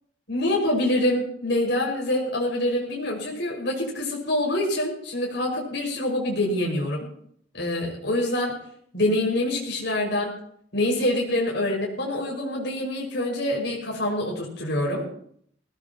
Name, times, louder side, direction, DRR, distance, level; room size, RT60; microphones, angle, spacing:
voice 1, 0.3-7.1 7.5-8.6 8.9-10.3 10.7-15.0, left 1 dB, 65° left, -2 dB, 5.8 m, -25 dB
21.0 x 17.5 x 3.0 m, 0.66 s
head